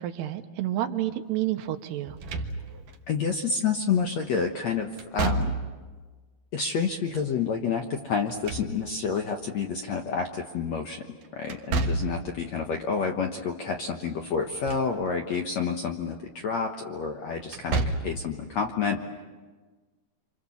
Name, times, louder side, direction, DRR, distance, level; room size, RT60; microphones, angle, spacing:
voice 1, 0.0-2.2, right 13 dB, 80° right, 7 dB, 3.2 m, -29 dB
Slam / Thump thud, 2.1-3.0 5.0-5.9 8.1-9.2 11.5-12.3 14.4-15.0 15.3-15.4 17.4-18.3, right 3 dB, 60° right, 2.8 m, -30 dB
voice 2, 3.1-5.6 6.5-11.0 11.3-19.0, left 5 dB, 65° left, 3 dB, 1.7 m, -29 dB
27.5 x 26.5 x 7.2 m, 1.4 s
omnidirectional pair, 4.7 m